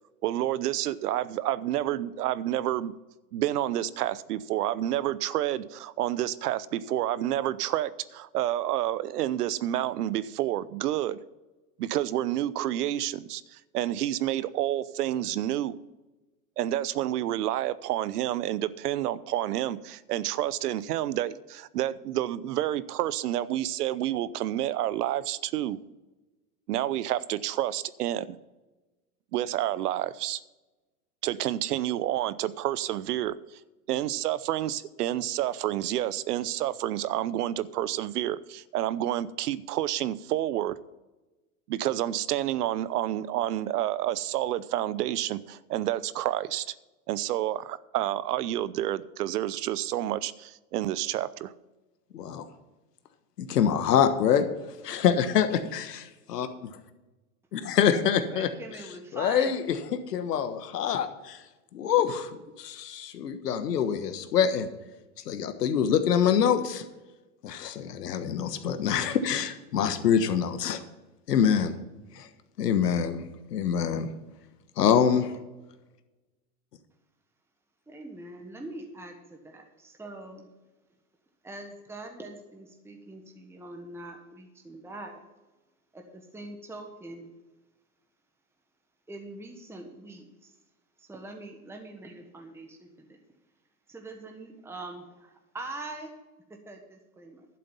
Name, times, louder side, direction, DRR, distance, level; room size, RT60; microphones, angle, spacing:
voice 1, 0.2-2.9 3.3-11.2 11.8-15.8 16.6-25.8 26.7-28.4 29.3-30.4 31.2-33.6 33.9-40.8 41.7-46.7 47.1-51.5, right 13 dB, 75° right, 18 dB, 0.8 m, -29 dB
voice 2, 52.1-52.4 53.4-54.4 54.8-56.7 57.5-58.5 59.1-59.6 59.9-61.4 61.7-62.3 62.6-64.7 65.3-66.9 67.4-70.8 71.3-71.7 72.1-72.3 72.6-73.2 73.5-74.1 74.8-75.3, left 8 dB, 85° left, 9 dB, 1.4 m, -25 dB
voice 3, 58.3-59.6 77.9-80.5 81.4-85.2 85.9-87.3 89.1-90.5 91.0-93.2 93.9-96.1 96.5-97.5, right 2 dB, 5° right, 3 dB, 1.3 m, -43 dB
12.0 x 7.7 x 5.6 m, 1.1 s
hypercardioid pair, 110°, 47 cm